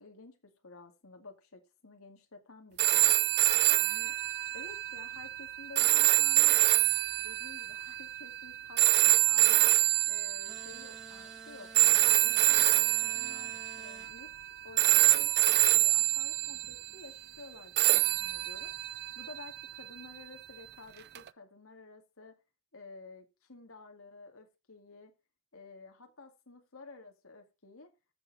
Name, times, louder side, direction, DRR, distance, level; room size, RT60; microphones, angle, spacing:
voice 1, 0.0-3.2 3.7-4.2 4.5-6.7 7.2-11.7 12.1-14.3 14.6-15.3 15.7-18.7 19.2-22.3 22.7-25.1 25.5-27.9, left 3 dB, 75° left, 2.2 m, -51 dB
sound 1, 2.8-11.0 11.7-14.5 14.8-16.9 17.8-20.0 21.1-21.3, right 15 dB, 50° right, 0.5 m, -26 dB
sound 2, 10.4-14.1, right 1 dB, 5° right, 2.2 m, -52 dB
14.0 x 6.7 x 4.2 m
head